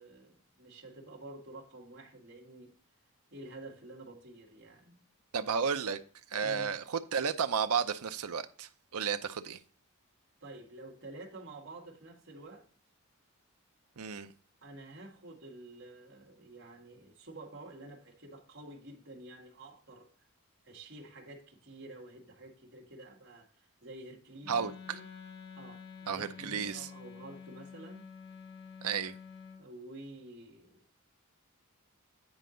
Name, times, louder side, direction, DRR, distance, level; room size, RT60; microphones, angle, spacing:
voice 1, 0.0-2.7 3.3-5.0 6.4-6.7 10.4-12.7 14.6-20.1 20.6-25.1 25.6-28.0 29.6-30.8, right 2 dB, 55° right, 2.0 m, -50 dB
voice 2, 5.3-6.0 6.3-9.6 14.0-14.3 24.5-25.0 26.1-26.9 28.8-29.1, right 6 dB, 85° right, 0.6 m, -33 dB
Wind instrument woodwind instrument, 24.4-29.6, left 6 dB, 50° left, 1.2 m, -49 dB
9.7 x 4.6 x 3.8 m
head